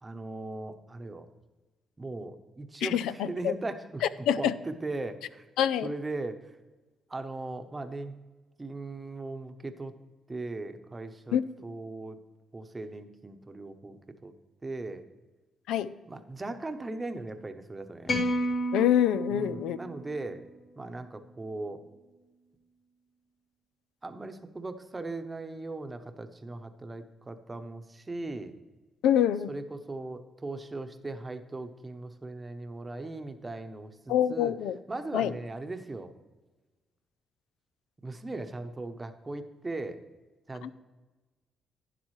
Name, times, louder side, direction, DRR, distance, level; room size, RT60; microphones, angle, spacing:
voice 1, 0.0-1.3 2.0-5.5 5.8-6.6 7.1-8.1 8.6-9.9 10.3-12.2 12.5-14.3 14.6-15.0 16.1-18.1 19.3-20.4 20.8-21.8 24.0-28.6 29.5-34.5 34.9-36.1 38.0-40.0 40.5-40.7, right 2 dB, 20° right, 8 dB, 0.9 m, -38 dB
voice 2, 2.8-3.1 3.4-3.5 4.3-4.5 5.6-5.9 11.3-11.4 15.7-15.9 18.7-19.8 29.0-29.5 34.1-34.8 35.1-35.3 40.6-40.7, left 10 dB, 90° left, 14 dB, 0.4 m, -25 dB
sound 1, 18.1-20.4, equal, 55° left, 1.9 m, -31 dB
11.5 x 9.7 x 3.2 m, 1.2 s
cardioid pair, 90°, 0 cm